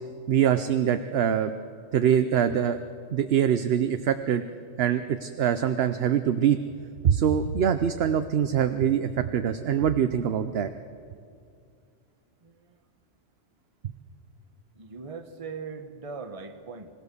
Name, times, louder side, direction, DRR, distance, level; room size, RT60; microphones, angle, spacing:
voice 1, 0.3-1.5 1.9-2.8 3.1-4.4 4.8-6.6 7.0-10.7, right 9 dB, 60° right, 9 dB, 0.9 m, -24 dB
voice 2, 14.8-16.9, right 5 dB, 30° right, 6 dB, 1.2 m, -39 dB
25.5 x 17.0 x 6.8 m, 2.3 s
omnidirectional pair, 1.3 m